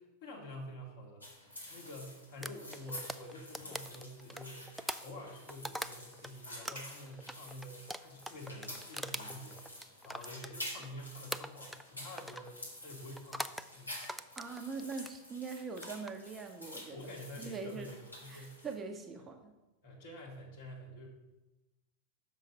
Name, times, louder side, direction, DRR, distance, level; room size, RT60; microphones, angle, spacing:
voice 1, 0.0-4.7 5.0-14.0 16.9-18.6 19.8-21.1, left 1 dB, 55° left, -2 dB, 2.3 m, -48 dB
sound 1, 1.2-18.7, left 1 dB, 85° left, 1.6 m, -49 dB
sound 2, 2.4-6.3 6.6-10.9 11.3-11.9 12.2-12.5 13.2-13.7 14.0-15.2 15.7-16.1, right 1 dB, ahead, 0.3 m, -42 dB
voice 2, 14.4-17.0 17.4-17.9 18.3-19.5, right 4 dB, 20° right, 5 dB, 0.7 m, -42 dB
6.5 x 5.5 x 5.2 m, 1.0 s
figure-of-eight pair, 90°, 0 cm